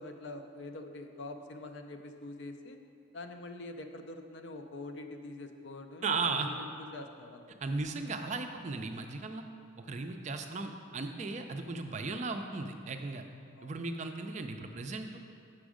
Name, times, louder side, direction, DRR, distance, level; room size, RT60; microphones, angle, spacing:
voice 1, 0.0-2.8 3.1-7.6 13.5-13.7, left 2 dB, 60° left, 6 dB, 0.5 m, -45 dB
voice 2, 6.0-6.5 7.6-9.4 9.8-13.2 13.6-15.2, right 3 dB, 35° right, 6 dB, 0.4 m, -36 dB
6.2 x 6.1 x 4.9 m, 2.3 s
head